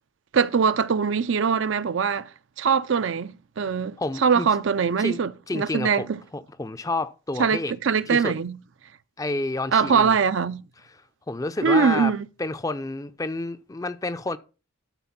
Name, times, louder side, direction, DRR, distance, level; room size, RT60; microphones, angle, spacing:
voice 1, 0.3-2.3 2.6-6.2 7.4-8.6 9.7-10.6 11.6-12.3, right 6 dB, 65° right, 0.5 m, -22 dB
voice 2, 4.0-4.5 5.0-5.2 5.5-7.7 8.1-8.3 9.2-10.2 11.3-12.1 12.4-14.4, left 2 dB, 15° left, 0.4 m, -29 dB
12.5 x 4.4 x 5.8 m
head